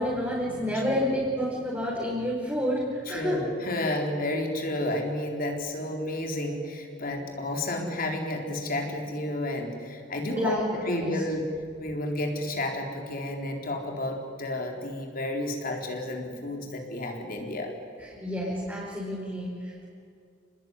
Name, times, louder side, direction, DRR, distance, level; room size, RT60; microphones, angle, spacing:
voice 1, 0.0-3.4 10.4-11.2 18.0-19.9, equal, 10° right, -5 dB, 5.1 m, -29 dB
voice 2, 3.1-11.4 11.8-17.7, left 1 dB, 50° left, 2 dB, 4.1 m, -31 dB
29.0 x 20.5 x 9.8 m, 2.3 s
head